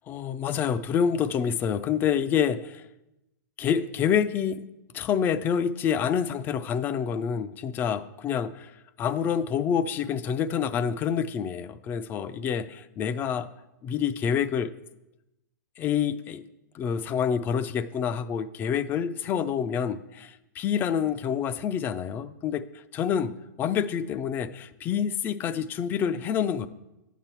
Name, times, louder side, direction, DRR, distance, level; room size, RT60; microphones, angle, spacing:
voice 1, 0.1-2.8 3.6-4.6 4.9-8.7 9.0-13.5 13.8-14.7 15.8-16.4 16.7-26.7, left 8 dB, 20° left, 0.4 m, -27 dB
11.0 x 9.1 x 4.5 m
hypercardioid pair, 145°, 11 cm